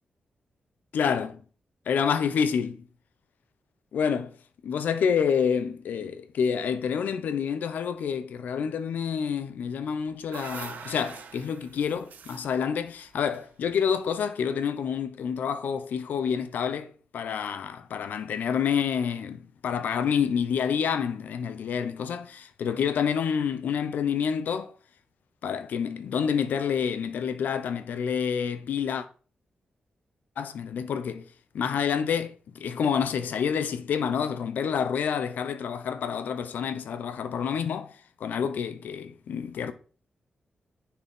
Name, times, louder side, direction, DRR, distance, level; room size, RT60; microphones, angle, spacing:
voice 1, 0.9-1.3 1.9-2.8 3.9-4.3 4.6-24.7 25.4-29.1 30.4-31.2 31.5-39.7, left 7 dB, 85° left, 0.8 m, -28 dB
sound 1, 9.8-14.1, right 7 dB, 90° right, 0.7 m, -44 dB
10.0 x 4.4 x 3.7 m
wide cardioid pair, 155°, 3 cm